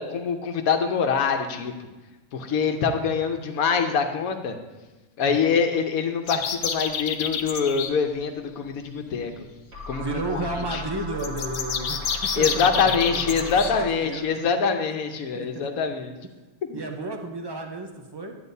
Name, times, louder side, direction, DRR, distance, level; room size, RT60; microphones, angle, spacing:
voice 1, 0.0-1.7 2.3-4.5 5.2-9.3 9.9-10.0 10.3-10.4 10.7-10.8 12.4-16.1 16.7-16.8, left 6 dB, 85° left, 6 dB, 1.2 m, -24 dB
sound 1, 6.3-7.9 11.2-13.7, left 7 dB, 65° left, 0.9 m, -28 dB
sound 2, 9.7-14.1, left 2 dB, 75° right, 2.3 m, -37 dB
voice 2, 10.0-14.5 15.3-15.9 16.7-18.4, right 2 dB, 25° right, 3 dB, 0.6 m, -33 dB
11.0 x 9.0 x 2.7 m, 1.1 s
omnidirectional pair, 1.5 m